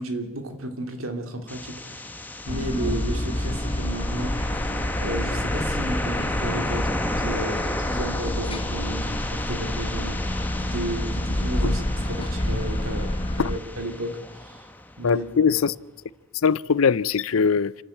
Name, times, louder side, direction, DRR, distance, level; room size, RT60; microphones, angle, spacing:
voice 1, 0.0-4.3 5.0-14.7 15.0-15.6, right 1 dB, 85° right, 2.9 m, -33 dB
sound 1, 1.5-15.4, left 1 dB, 10° left, 1.3 m, -33 dB
sound 2, 2.5-13.6, left 1 dB, 25° left, 1.0 m, -28 dB
voice 2, 15.0-15.7 16.4-17.7, left 6 dB, 80° left, 0.6 m, -21 dB
28.0 x 12.0 x 8.7 m
head